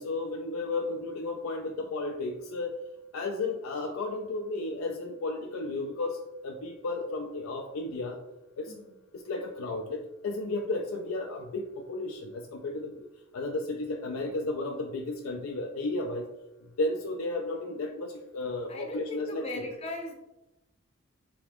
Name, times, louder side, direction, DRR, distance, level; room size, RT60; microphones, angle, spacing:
voice 1, 0.0-2.8 3.1-8.2 8.6-8.7 9.1-12.9 13.3-16.3 16.6-19.7, left 2 dB, 90° left, 2 dB, 0.4 m, -33 dB
voice 2, 8.7-9.0 14.1-14.3 18.7-20.1, left 1 dB, 30° left, 2 dB, 0.7 m, -38 dB
3.4 x 3.4 x 3.4 m, 0.97 s
head